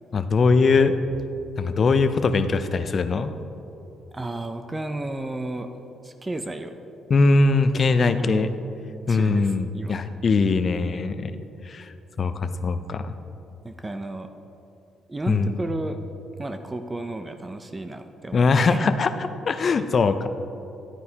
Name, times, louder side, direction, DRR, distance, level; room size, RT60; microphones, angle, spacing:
voice 1, 0.1-0.9 1.6-3.3 7.1-8.5 9.1-11.4 11.6-13.1 15.3-15.6 18.3-20.3, left 4 dB, 45° left, 10 dB, 0.5 m, -21 dB
voice 2, 4.1-5.7 6.0-6.7 8.0-8.5 9.1-10.0 10.9-11.0 13.6-14.3 15.1-16.0 16.4-18.9, right 2 dB, 20° right, 7 dB, 0.5 m, -33 dB
11.5 x 9.5 x 2.9 m, 2.9 s
cardioid pair, 90°, 0 cm